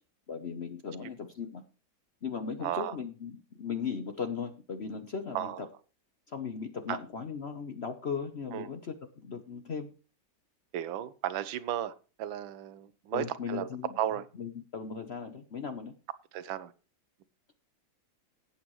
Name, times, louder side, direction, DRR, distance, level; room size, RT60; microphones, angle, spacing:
voice 1, 0.3-1.6 2.2-5.7 6.3-8.9 9.2-9.9 13.1-13.9 14.4-15.9, left 6 dB, 50° left, 0.8 m, -37 dB
voice 2, 2.6-3.0 5.3-5.6 6.9-7.0 8.5-8.7 10.7-13.7 14.0-14.2 16.3-16.7, right 11 dB, 85° right, 1.5 m, -34 dB
17.0 x 8.4 x 3.1 m
omnidirectional pair, 2.1 m